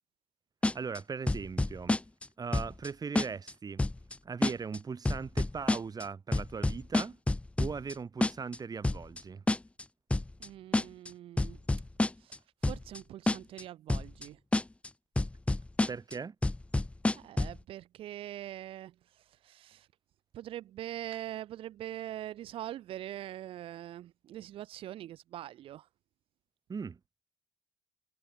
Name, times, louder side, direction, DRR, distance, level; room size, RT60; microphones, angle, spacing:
sound 1, 0.6-1.0 1.3-2.3 2.5-2.9 3.2-3.5 3.8-4.1 4.4-4.8 5.1-6.0 6.3-7.9 8.2-8.6 8.8-9.2 9.5-9.8 10.1-10.5 10.7-11.1 11.4-12.4 12.6-13.0 13.3-13.6 13.9-14.3 14.5-14.9 15.2-16.1 16.4-17.6, left 2 dB, 15° left, 0.5 m, -28 dB
voice 1, 0.7-2.0 2.4-3.8 4.2-7.2 7.6-9.4 15.9-16.4 26.7-27.0, right 5 dB, 45° right, 4.0 m, -39 dB
voice 2, 10.4-11.6 12.2-14.4 17.1-19.9 20.3-25.9, right 13 dB, 85° right, 2.8 m, -43 dB
cardioid pair, 70°, 9 cm